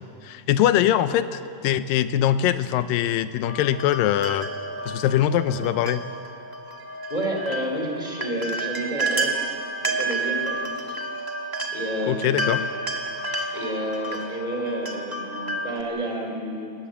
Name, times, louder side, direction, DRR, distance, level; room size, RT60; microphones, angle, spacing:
voice 1, 0.0-4.5 4.9-6.0 12.1-12.6, left 11 dB, 85° left, 12 dB, 2.4 m, -22 dB
sound 1, 3.4-15.8, right 2 dB, 30° right, 0.4 m, -30 dB
voice 2, 7.1-9.5 9.9-11.0 11.7-12.6 13.5-16.7, right 1 dB, 10° left, 1 dB, 2.5 m, -30 dB
27.0 x 18.5 x 7.5 m, 2.6 s
omnidirectional pair, 3.9 m